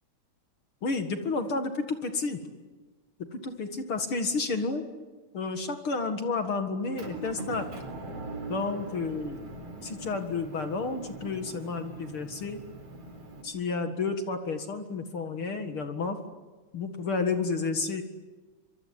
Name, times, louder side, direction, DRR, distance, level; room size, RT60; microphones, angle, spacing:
voice 1, 0.8-2.4 3.3-4.8 5.3-7.7 8.5-9.4 9.8-12.6 13.4-16.2 16.7-18.0, left 4 dB, 50° left, 7 dB, 2.4 m, -31 dB
Motor vehicle (road) / Engine, 7.0-13.4, right 2 dB, 50° right, 5.3 m, -41 dB
26.0 x 24.0 x 9.7 m, 1.3 s
omnidirectional pair, 3.5 m